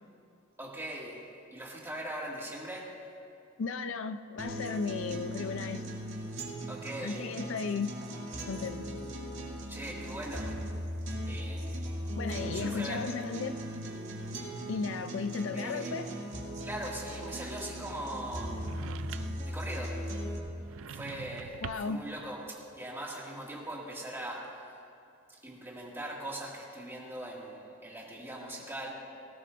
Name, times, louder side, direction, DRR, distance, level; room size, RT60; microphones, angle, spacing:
voice 1, 0.6-1.2 1.5-2.9 6.7-7.3 9.7-10.5 11.3-12.0 12.5-13.1 15.5-16.0 16.6-18.7 19.4-20.0 20.9-24.7 25.3-28.9, right 1 dB, 10° right, -3 dB, 2.0 m, -40 dB
voice 2, 3.6-5.8 7.0-7.9 8.5-8.9 12.2-13.6 14.7-16.1 21.6-22.0, left 5 dB, 70° left, 10 dB, 0.5 m, -35 dB
sound 1, 4.4-20.4, equal, 65° right, 2.3 m, -38 dB
sound 2, 18.6-19.5 20.6-22.0, right 7 dB, 80° right, 0.4 m, -44 dB
18.5 x 17.5 x 2.5 m, 2.5 s
head